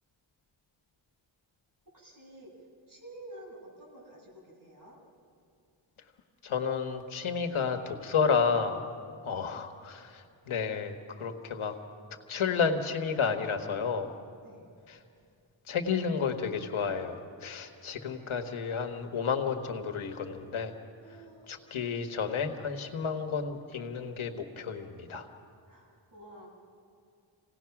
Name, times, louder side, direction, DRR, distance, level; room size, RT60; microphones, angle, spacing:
voice 1, 1.9-5.0 9.2-9.5 14.4-14.7 21.0-21.5 25.7-26.5, right 1 dB, 40° right, -2 dB, 7.4 m, -50 dB
voice 2, 6.4-8.9 9.2-11.7 12.3-14.1 14.9-15.0 15.7-20.7 21.5-25.3, left 6 dB, 90° left, 5 dB, 1.6 m, -31 dB
27.5 x 18.0 x 6.0 m, 2.4 s
wide cardioid pair, 90°, 47 cm